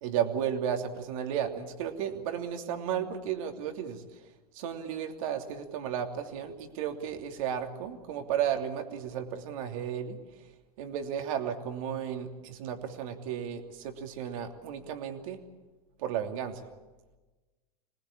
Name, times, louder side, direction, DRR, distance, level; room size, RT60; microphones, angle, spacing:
voice 1, 0.0-4.0 4.5-10.2 10.8-15.4 16.0-16.6, right 9 dB, 60° right, 5 dB, 2.9 m, -33 dB
25.5 x 19.5 x 8.7 m, 1.2 s
hypercardioid pair, 100°, 20 cm